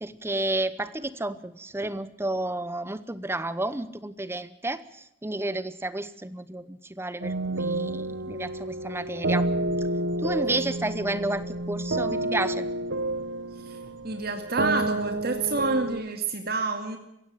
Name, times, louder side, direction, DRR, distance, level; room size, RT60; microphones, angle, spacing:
voice 1, 0.0-4.8 5.2-9.5 10.2-12.7, right 2 dB, 15° right, 15 dB, 0.8 m, -31 dB
sound 1, 7.2-16.0, right 2 dB, 85° right, 1.3 m, -29 dB
voice 2, 13.5-17.0, right 3 dB, 55° right, 5 dB, 2.2 m, -29 dB
23.0 x 16.5 x 7.7 m, 0.82 s
head